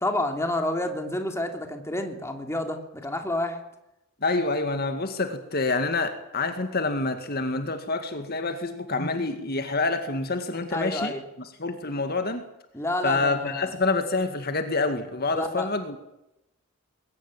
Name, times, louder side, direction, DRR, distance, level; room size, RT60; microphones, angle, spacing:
voice 1, 0.0-3.6 10.7-11.2 12.7-13.7 15.3-15.7, left 1 dB, 15° left, 4 dB, 3.0 m, -29 dB
voice 2, 4.2-11.1 11.6-12.5 13.0-16.0, left 3 dB, 45° left, 7 dB, 2.2 m, -27 dB
21.5 x 18.5 x 9.2 m, 0.88 s
head